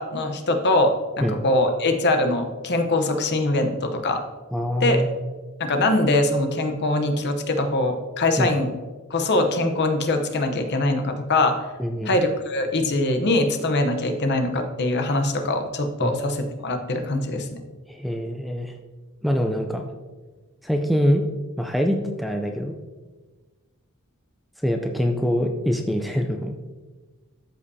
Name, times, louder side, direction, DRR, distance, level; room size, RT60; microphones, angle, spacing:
voice 1, 0.0-4.2 4.8-5.0 5.6-8.7 9.1-11.6 12.0-17.5, left 2 dB, 50° left, 5 dB, 0.8 m, -22 dB
voice 2, 4.5-5.1 8.4-8.5 11.8-12.2 16.0-16.2 17.9-18.7 19.2-19.9 20.6-21.3 21.6-22.7 24.6-26.5, equal, ahead, 3 dB, 0.4 m, -24 dB
13.0 x 5.3 x 2.7 m, 1.3 s
head